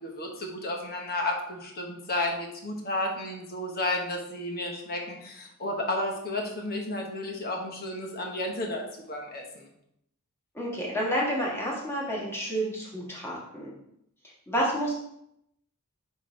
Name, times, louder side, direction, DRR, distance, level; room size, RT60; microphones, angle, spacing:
voice 1, 0.0-9.7, left 1 dB, 45° left, 1 dB, 1.2 m, -32 dB
voice 2, 10.5-13.7 14.5-15.0, equal, 10° left, -5 dB, 1.6 m, -29 dB
5.2 x 3.9 x 5.1 m, 0.76 s
head